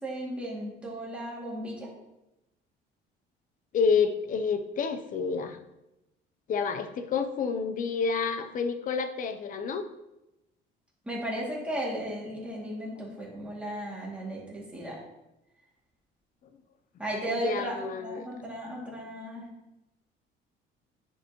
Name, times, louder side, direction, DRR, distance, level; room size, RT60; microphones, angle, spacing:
voice 1, 0.0-1.9 11.0-15.0 17.0-19.5, right 1 dB, 5° right, -5 dB, 2.3 m, -35 dB
voice 2, 3.7-5.6 6.5-9.9 17.3-18.3, left 5 dB, 45° left, 9 dB, 0.7 m, -29 dB
9.8 x 5.3 x 3.0 m, 0.93 s
cardioid pair, 145°, 20 cm